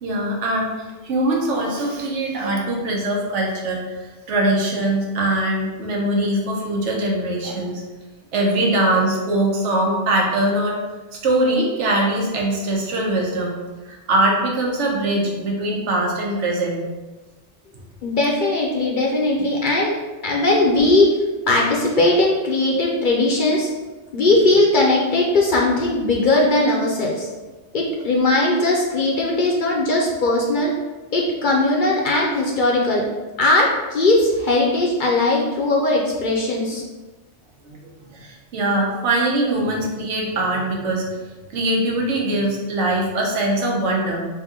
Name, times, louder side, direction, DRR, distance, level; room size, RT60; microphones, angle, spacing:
voice 1, 0.0-0.7 1.0-4.0 4.3-7.8 8.3-10.8 11.1-13.6 13.8-16.8 37.6-37.8 38.1-41.0 41.5-44.3, right 1 dB, 80° right, -1 dB, 1.1 m, -22 dB
voice 2, 18.0-20.0 20.2-21.1 21.5-23.7 24.1-27.3 27.7-30.7 31.1-33.0 33.4-36.8, left 2 dB, 55° left, -2 dB, 0.6 m, -19 dB
3.4 x 2.9 x 3.5 m, 1.2 s
omnidirectional pair, 1.2 m